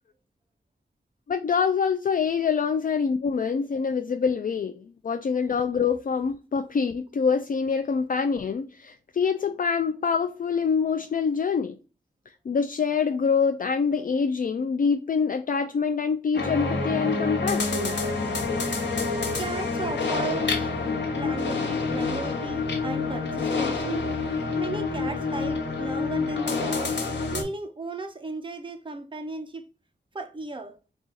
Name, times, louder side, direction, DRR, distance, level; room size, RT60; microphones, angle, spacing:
voice 1, 1.3-11.8 12.5-18.0, left 6 dB, 50° left, 0.4 m, -25 dB
sound 1, 16.3-27.4, left 4 dB, 80° left, 1.1 m, -27 dB
voice 2, 19.1-20.7 21.1-24.1 24.6-27.0 27.3-29.7 30.1-30.8, right 3 dB, 25° right, 0.6 m, -35 dB
4.0 x 2.4 x 3.8 m
wide cardioid pair, 75°, 19 cm